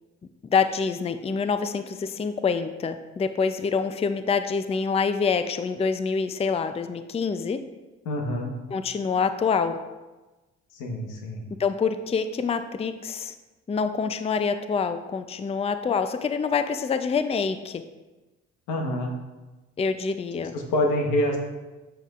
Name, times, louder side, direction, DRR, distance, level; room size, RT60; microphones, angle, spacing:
voice 1, 0.4-7.6 8.7-9.8 11.6-13.3 13.7-17.8 19.8-20.5, left 5 dB, 20° left, 10 dB, 0.4 m, -26 dB
voice 2, 8.0-8.5 10.7-11.4 18.7-19.1 20.5-21.4, left 1 dB, 85° left, 2 dB, 1.2 m, -26 dB
7.6 x 7.5 x 2.5 m, 1.1 s
supercardioid pair, 70°, 30 cm